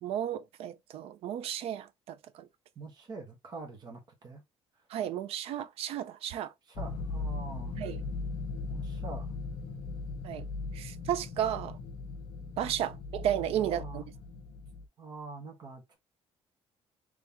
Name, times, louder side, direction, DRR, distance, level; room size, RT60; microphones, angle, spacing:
voice 1, 0.0-2.5 4.9-6.5 7.8-8.0 10.2-10.5 10.7-11.8 12.6-14.0, right 10 dB, 70° right, 0.5 m, -33 dB
voice 2, 2.7-4.4 6.7-7.7 8.7-9.3 12.6-12.7 13.3-14.0 15.0-16.0, right 3 dB, 40° right, 1.4 m, -44 dB
sound 1, 6.8-14.9, left 3 dB, 55° left, 1.1 m, -38 dB
3.6 x 3.3 x 2.9 m
cardioid pair, 145°, 10 cm